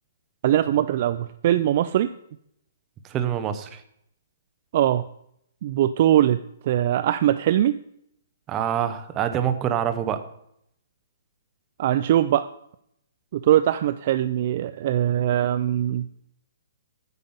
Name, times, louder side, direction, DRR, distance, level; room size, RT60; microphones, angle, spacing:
voice 1, 0.4-2.1 4.7-5.0 5.6-6.4 6.7-7.8 11.8-12.5 13.3-16.0, right 12 dB, 40° right, 13 dB, 0.4 m, -21 dB
voice 2, 3.1-3.8 8.5-10.2, right 9 dB, 20° right, 9 dB, 0.7 m, -25 dB
9.6 x 5.3 x 7.2 m, 0.72 s
hypercardioid pair, 165°, 0 cm